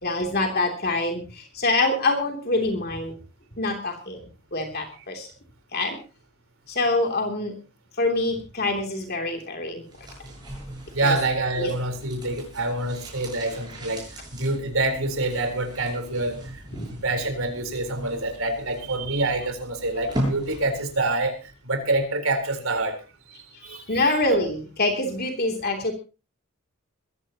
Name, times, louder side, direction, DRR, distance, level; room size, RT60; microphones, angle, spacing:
voice 1, 0.0-3.1 3.6-4.2 4.5-5.3 5.7-6.0 6.7-7.5 8.0-9.8 11.0-11.2 11.6-11.7 16.7-16.9 23.9-25.9, left 2 dB, 45° left, 3 dB, 3.0 m, -25 dB
sound 1, 9.8-21.1 21.3-21.4, right 1 dB, 20° right, 7.9 m, -37 dB
voice 2, 10.9-14.1 14.3-16.6 17.0-24.0, right 2 dB, 70° right, 5 dB, 4.1 m, -27 dB
22.5 x 15.0 x 3.0 m, 0.33 s
head